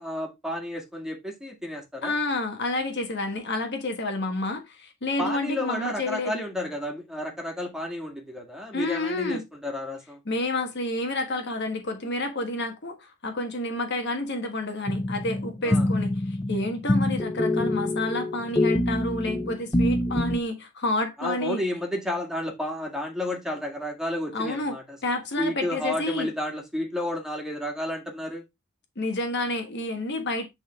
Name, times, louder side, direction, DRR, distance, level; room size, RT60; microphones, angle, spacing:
voice 1, 0.0-2.1 5.2-10.2 15.6-15.9 21.2-25.0 25.4-28.4, left 1 dB, 5° right, 2.0 m, -31 dB
voice 2, 2.0-6.4 8.7-9.4 10.3-21.6 24.3-24.8 25.0-26.3 29.0-30.5, left 2 dB, 55° left, 1.4 m, -29 dB
sound 1, 14.9-20.4, left 1 dB, 15° left, 0.5 m, -25 dB
9.7 x 3.8 x 3.6 m
head